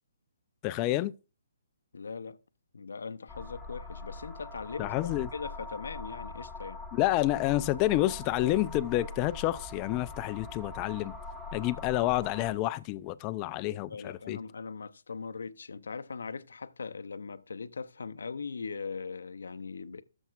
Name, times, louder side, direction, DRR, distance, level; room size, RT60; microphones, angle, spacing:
voice 1, 0.6-1.1 4.8-5.3 6.9-11.1 11.5-14.4, left 16 dB, 25° left, 0.4 m, -29 dB
voice 2, 1.9-2.4 2.7-6.8 13.9-20.0, left 5 dB, 80° left, 0.6 m, -40 dB
sound 1, 3.3-12.5, left 3 dB, ahead, 1.4 m, -43 dB
14.5 x 7.1 x 2.4 m
hypercardioid pair, 150°, 0 cm